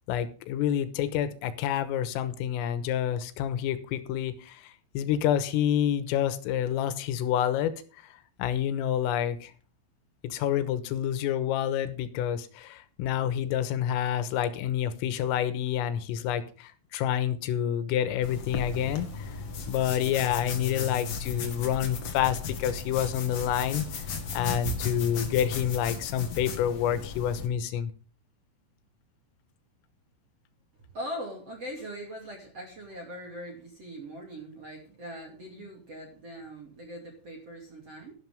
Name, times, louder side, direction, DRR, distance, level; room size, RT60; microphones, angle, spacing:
voice 1, 0.1-4.6 5.0-7.7 8.4-9.5 10.2-19.1 19.7-23.9 24.3-27.9, left 10 dB, 85° left, 12 dB, 3.7 m, -28 dB
sound 1, 18.2-27.5, left 5 dB, 55° left, 1.7 m, -35 dB
voice 2, 30.9-38.1, equal, 40° right, 1 dB, 2.7 m, -41 dB
12.0 x 12.0 x 3.6 m, 0.39 s
omnidirectional pair, 5.9 m